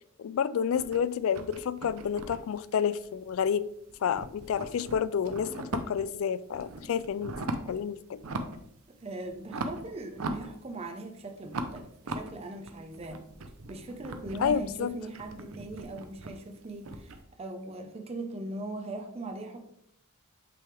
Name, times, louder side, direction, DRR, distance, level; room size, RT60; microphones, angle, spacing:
voice 1, 0.2-3.7 4.0-7.4 7.7-8.2 14.4-14.9, left 7 dB, 65° left, 17 dB, 0.3 m, -29 dB
sound 1, 0.7-3.6 3.9-6.2 6.5-7.8 8.1-8.7 9.0-11.0 11.5-17.2, right 2 dB, 70° right, 0.6 m, -39 dB
voice 2, 9.0-13.3 13.7-19.6, right 2 dB, 25° right, 4 dB, 0.6 m, -40 dB
8.4 x 3.4 x 3.4 m, 0.73 s
head